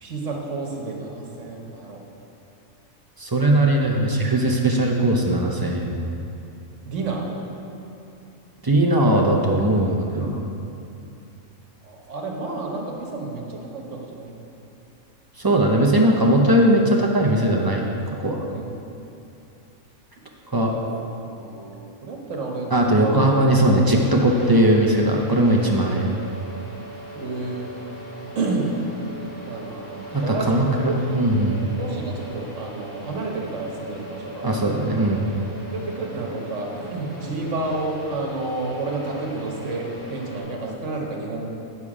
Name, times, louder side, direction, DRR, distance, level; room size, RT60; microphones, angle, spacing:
voice 1, 0.0-2.0 6.8-7.3 11.8-14.4 18.3-18.7 20.7-23.7 27.1-27.7 28.3-28.7 29.5-31.1 31.8-34.4 35.7-41.5, right 3 dB, 60° right, 0 dB, 1.3 m, -30 dB
voice 2, 3.2-5.9 8.6-10.5 15.4-18.4 20.5-20.8 22.7-26.2 30.1-31.6 34.4-35.3, right 1 dB, 35° right, -1 dB, 0.3 m, -19 dB
sound 1, 23.9-40.4, right 2 dB, 20° left, 2.2 m, -39 dB
8.9 x 6.8 x 4.8 m, 2.8 s
omnidirectional pair, 1.5 m